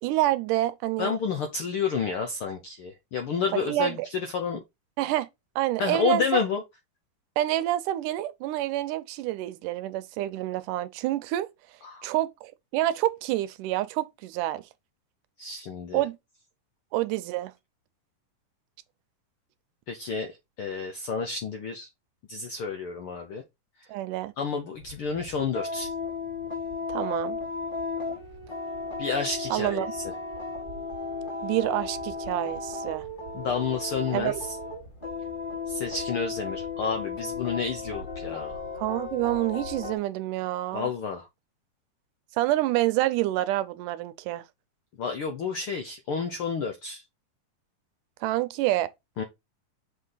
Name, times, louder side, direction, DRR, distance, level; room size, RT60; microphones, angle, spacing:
voice 1, 0.0-1.2 3.5-4.1 5.0-5.3 5.6-6.4 7.4-11.5 12.0-14.6 15.9-16.2 16.9-17.5 23.9-24.3 26.9-27.4 29.5-29.9 31.4-33.1 34.1-34.4 38.8-40.9 42.4-44.4 48.2-48.9, right 15 dB, 80° right, 2.2 m, -27 dB
voice 2, 1.0-4.6 5.8-6.6 11.8-12.1 15.4-16.0 19.9-20.3 20.6-21.9 22.3-23.4 23.8-23.9 24.4-25.9 29.0-30.0 33.3-34.3 35.7-38.6 40.7-41.3 45.0-47.0 49.2-49.3, left 5 dB, 70° left, 1.3 m, -30 dB
sound 1, 24.7-40.0, left 3 dB, 20° left, 1.7 m, -35 dB
6.6 x 4.6 x 3.9 m
omnidirectional pair, 3.7 m